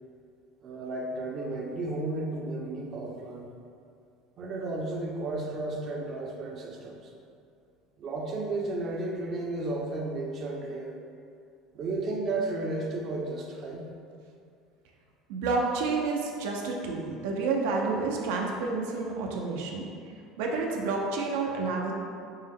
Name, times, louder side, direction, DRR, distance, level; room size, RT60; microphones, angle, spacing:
voice 1, 0.6-3.5 4.4-7.1 8.0-11.0 11.7-13.8, right 2 dB, 35° right, 1 dB, 0.5 m, -33 dB
voice 2, 15.3-19.9 20.4-21.9, right 4 dB, 85° right, 0 dB, 0.5 m, -29 dB
5.3 x 2.1 x 3.5 m, 2.4 s
cardioid pair, 155°, 0 cm